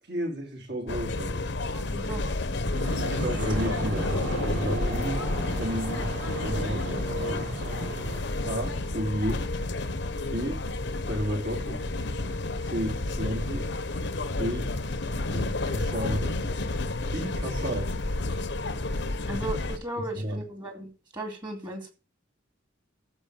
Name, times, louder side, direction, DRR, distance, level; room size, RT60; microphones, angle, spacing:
voice 1, 0.1-1.5 3.0-6.1 6.4-6.8 7.2-7.5 8.4-9.5 10.3-10.6 11.1-11.8 12.6-13.7 14.4-14.7 15.3-16.6 17.1-18.0 20.0-20.4, equal, 55° right, 3.8 m, -32 dB
sound 1, 0.9-19.8, left 2 dB, 60° left, 1.0 m, -30 dB
voice 2, 1.7-2.2 19.3-21.9, right 1 dB, 20° right, 2.3 m, -36 dB
sound 2, 2.7-8.2, right 2 dB, 80° right, 3.6 m, -36 dB
14.5 x 5.0 x 7.4 m
head